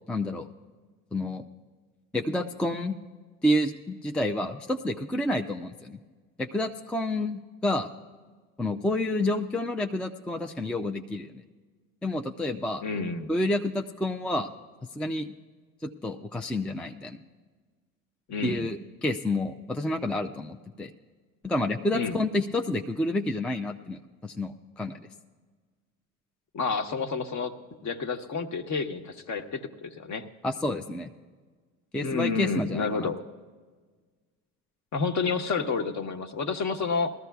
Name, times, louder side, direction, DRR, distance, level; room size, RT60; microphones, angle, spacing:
voice 1, 0.1-0.5 1.1-1.4 2.1-3.0 3.4-6.0 6.4-7.9 8.6-11.3 12.0-12.8 13.3-14.5 15.0-15.3 15.8-17.2 18.4-20.9 21.4-24.9 30.4-31.1 31.9-33.1, left 1 dB, 5° left, 4 dB, 0.4 m, -29 dB
voice 2, 12.8-13.3 18.3-18.7 21.9-22.2 26.5-27.5 27.8-30.3 32.0-33.2 34.9-37.1, left 4 dB, 45° left, 6 dB, 1.1 m, -29 dB
19.5 x 13.5 x 2.3 m, 1.5 s
hypercardioid pair, 75°, 41 cm